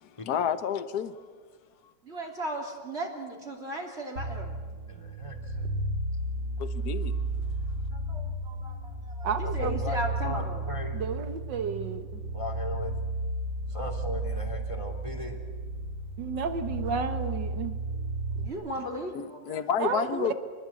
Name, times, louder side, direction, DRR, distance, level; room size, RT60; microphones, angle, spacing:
voice 1, 0.0-1.1 6.6-7.2 19.1-20.3, left 8 dB, 65° left, 11 dB, 1.6 m, -30 dB
voice 2, 2.0-4.6 7.9-10.7 18.3-19.7, right 1 dB, 35° right, 0 dB, 3.3 m, -37 dB
sound 1, 4.2-18.5, right 2 dB, 65° right, 2.7 m, -33 dB
voice 3, 4.9-5.7 9.4-11.0 12.3-12.9 13.7-15.4, left 2 dB, 15° left, 3 dB, 3.1 m, -38 dB
voice 4, 9.2-9.8 10.9-12.2 16.2-17.8 19.8-20.3, right 6 dB, 80° right, 9 dB, 2.1 m, -32 dB
27.0 x 20.5 x 8.6 m, 1.5 s
omnidirectional pair, 1.9 m